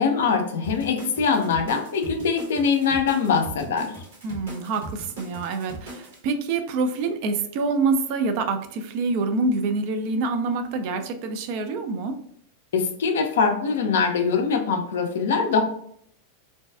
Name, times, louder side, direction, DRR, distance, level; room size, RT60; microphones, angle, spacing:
voice 1, 0.0-3.9 12.7-15.6, left 5 dB, 60° left, 5 dB, 0.4 m, -23 dB
sound 1, 0.6-6.2, right 1 dB, 60° right, 1.0 m, -39 dB
voice 2, 4.2-12.1, right 3 dB, 45° right, 7 dB, 0.3 m, -26 dB
2.5 x 2.2 x 2.2 m, 0.66 s
figure-of-eight pair, 90°, 0 cm